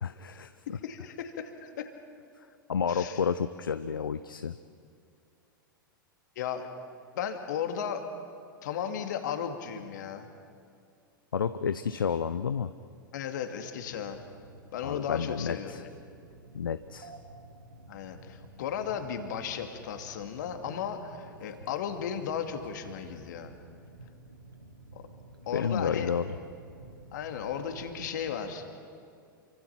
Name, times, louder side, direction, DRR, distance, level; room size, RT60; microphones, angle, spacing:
voice 1, 0.0-0.5 2.7-4.5 11.3-12.7 14.8-15.8 16.5-17.1 25.5-26.3, left 6 dB, 75° left, 12 dB, 0.6 m, -30 dB
voice 2, 0.7-1.9 2.9-3.2 6.4-6.7 7.1-8.1 8.6-10.3 13.1-14.2 14.7-15.9 17.9-23.5 24.9-25.0 25.5-26.1 27.1-28.7, left 8 dB, 60° left, 6 dB, 2.5 m, -35 dB
sound 1, 13.8-28.3, right 2 dB, 85° right, 2.0 m, -51 dB
28.5 x 25.0 x 5.9 m, 2.4 s
figure-of-eight pair, 95°, 11 cm